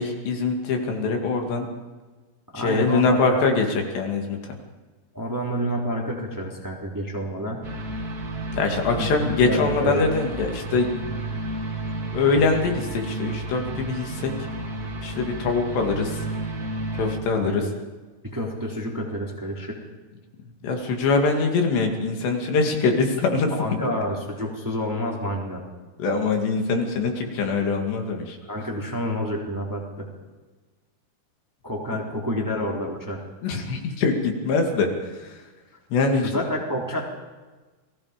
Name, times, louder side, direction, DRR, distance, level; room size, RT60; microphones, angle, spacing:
voice 1, 0.0-1.7 2.6-4.5 8.5-10.9 12.1-14.3 15.0-16.2 16.9-17.7 20.6-23.5 23.8-23.9 26.0-28.4 33.4-35.3 35.9-36.3, left 4 dB, 75° left, 3 dB, 4.5 m, -23 dB
voice 2, 2.5-3.5 5.1-7.6 9.0-9.1 9.4-10.0 17.4-17.7 18.2-19.9 23.5-25.6 28.5-30.1 31.6-33.2 36.1-37.0, equal, 5° right, -1 dB, 2.7 m, -29 dB
sound 1, 7.6-17.2, right 1 dB, 45° right, 1.2 m, -32 dB
29.5 x 20.5 x 5.2 m, 1.3 s
omnidirectional pair, 5.0 m